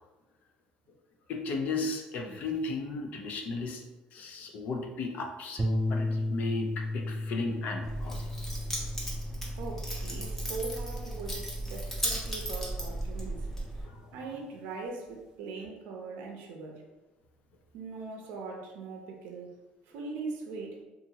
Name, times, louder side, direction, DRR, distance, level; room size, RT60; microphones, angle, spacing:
voice 1, 1.3-3.8 4.1-8.2 14.0-14.1, left 3 dB, 60° left, 2 dB, 0.5 m, -35 dB
sound 1, 5.6-14.0, left 1 dB, 25° right, 0.3 m, -36 dB
Keys jangling, 7.8-13.8, right 1 dB, 10° left, 0.7 m, -35 dB
voice 2, 9.6-13.5 14.1-16.8 17.7-19.6 19.9-20.8, right 4 dB, 85° right, 1 dB, 0.5 m, -40 dB
2.7 x 2.4 x 2.7 m, 1.1 s
cardioid pair, 125°, 3 cm